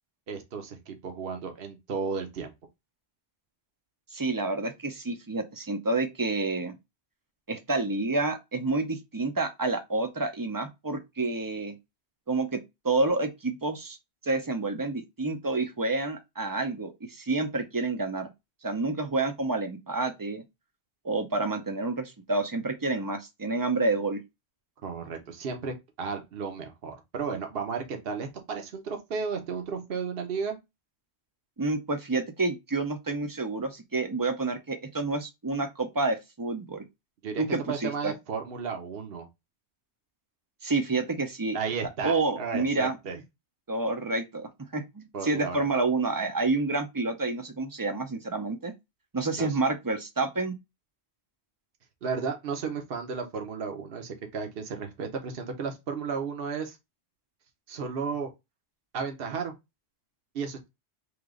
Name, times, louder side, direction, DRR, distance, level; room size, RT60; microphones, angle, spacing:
voice 1, 0.3-2.5 24.8-30.6 37.2-39.3 41.5-43.2 45.1-45.6 49.4-49.6 52.0-56.8 57.7-58.3 58.9-59.5 60.3-60.7, right 5 dB, 60° right, 1.1 m, -34 dB
voice 2, 4.1-6.8 7.5-11.7 12.3-14.0 14.2-18.3 18.6-20.4 21.0-24.2 31.6-36.8 37.4-38.1 40.6-41.6 42.0-43.0 43.7-48.7 49.1-50.6, right 3 dB, 25° right, 0.5 m, -29 dB
3.3 x 2.9 x 3.6 m
omnidirectional pair, 1.1 m